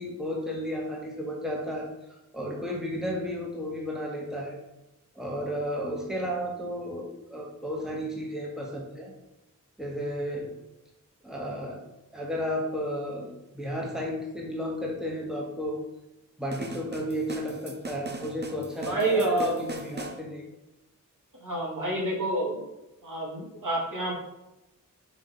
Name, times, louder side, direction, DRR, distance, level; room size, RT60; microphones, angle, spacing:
voice 1, 0.0-1.9 2.3-4.6 5.1-9.1 9.8-10.5 11.2-11.8 12.1-13.3 13.5-15.8 16.4-20.4, equal, ahead, -2 dB, 1.6 m, -33 dB
sound 1, 16.5-20.2, right 3 dB, 30° right, 0.8 m, -40 dB
voice 2, 18.9-19.6 21.4-22.6 23.0-24.1, right 2 dB, 70° right, -3 dB, 2.4 m, -28 dB
5.8 x 4.6 x 5.7 m, 0.95 s
wide cardioid pair, 105°, 32 cm